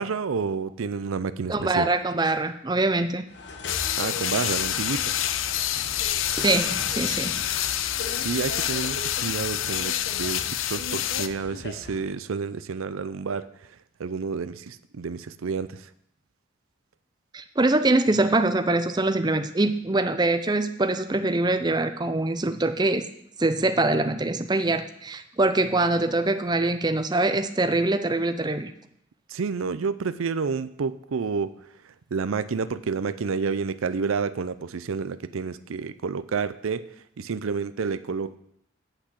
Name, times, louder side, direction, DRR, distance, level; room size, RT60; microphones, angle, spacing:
voice 1, 0.0-1.9 3.9-5.2 8.2-13.5 14.0-15.8 29.3-31.5 32.1-36.9 37.2-38.4, right 5 dB, 85° right, 14 dB, 0.5 m, -29 dB
voice 2, 1.5-3.3 6.3-7.4 17.3-23.0 23.4-28.7, right 2 dB, 20° right, 9 dB, 0.6 m, -24 dB
sound 1, 3.3-12.1, left 2 dB, 55° left, 1.1 m, -39 dB
sound 2, 3.7-11.3, left 11 dB, 75° left, 0.6 m, -27 dB
8.9 x 5.9 x 8.1 m, 0.71 s
head